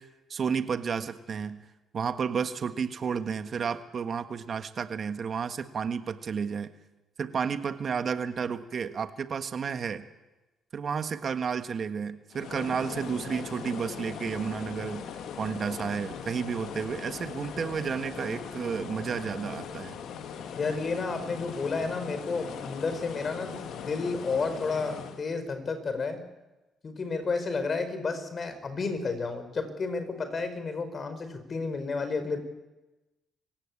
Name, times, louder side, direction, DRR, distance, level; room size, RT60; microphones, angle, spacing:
voice 1, 0.0-1.6 1.9-6.7 7.2-10.1 10.7-15.1 15.4-20.0, right 6 dB, 50° right, 10 dB, 1.5 m, -32 dB
sound 1, 12.3-25.2, left 7 dB, 70° left, 2.1 m, -40 dB
voice 2, 20.6-26.2 26.8-32.4, left 4 dB, 45° left, 10 dB, 4.7 m, -31 dB
26.5 x 16.5 x 8.6 m, 1.1 s
hypercardioid pair, 55°, 0 cm